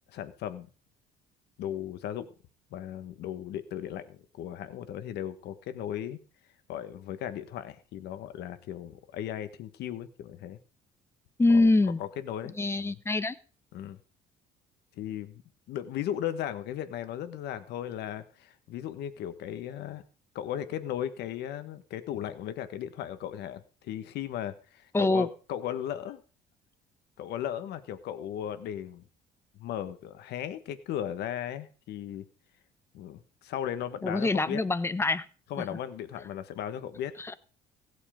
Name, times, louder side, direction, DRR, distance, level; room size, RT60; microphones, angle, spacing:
voice 1, 0.1-0.7 1.6-2.3 2.7-6.2 6.7-10.6 11.5-11.7 12.0-12.9 13.7-14.0 15.0-15.4 15.7-20.0 20.3-26.2 27.2-29.0 29.5-32.3 32.9-34.6 35.5-37.1, left 10 dB, 80° left, 12 dB, 1.5 m, -36 dB
voice 2, 11.4-12.0 12.6-13.4 24.9-25.3 34.0-35.3 35.6-35.7 37.2-37.3, left 2 dB, 15° left, 14 dB, 1.0 m, -24 dB
16.0 x 8.5 x 5.1 m, 0.37 s
cardioid pair, 110°, 17 cm